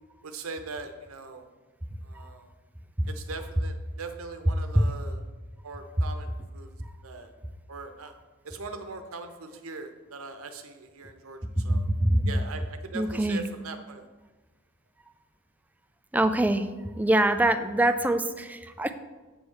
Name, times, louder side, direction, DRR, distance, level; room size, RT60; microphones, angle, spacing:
voice 1, 0.2-1.4 2.0-2.5 3.1-5.2 5.6-6.7 7.0-7.3 7.7-8.1 8.4-11.8 12.2-14.0, right 3 dB, 75° right, 7 dB, 0.8 m, -41 dB
voice 2, 11.6-12.5 12.9-13.4 16.1-16.7 16.9-18.9, right 1 dB, 10° right, 8 dB, 0.3 m, -24 dB
7.9 x 3.2 x 6.4 m, 1.3 s
head